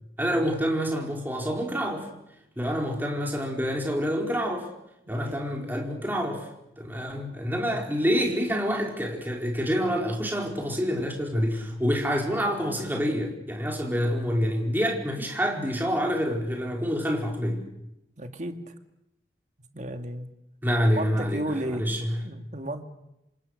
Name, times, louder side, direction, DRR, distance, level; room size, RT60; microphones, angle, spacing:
voice 1, 0.2-2.1 2.6-4.7 5.1-6.5 6.8-17.6 20.6-22.2, equal, 10° right, 1 dB, 4.5 m, -27 dB
voice 2, 5.1-5.4 7.5-7.8 18.2-18.7 19.7-20.3 20.9-22.0 22.2-22.8, right 1 dB, 40° right, 7 dB, 2.1 m, -34 dB
27.5 x 26.0 x 6.6 m, 0.88 s
head